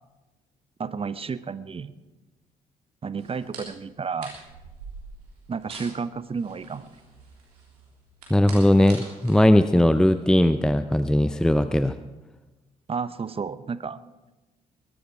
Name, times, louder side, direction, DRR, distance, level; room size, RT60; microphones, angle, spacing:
voice 1, 0.8-1.9 3.0-4.4 5.5-7.0 12.9-14.0, right 5 dB, 30° right, 16 dB, 0.8 m, -32 dB
sound 1, 3.2-10.5, right 3 dB, 80° right, 3.3 m, -45 dB
voice 2, 8.3-12.0, left 1 dB, 5° left, 12 dB, 0.6 m, -19 dB
21.5 x 12.5 x 4.9 m, 1.1 s
figure-of-eight pair, 45°, 20 cm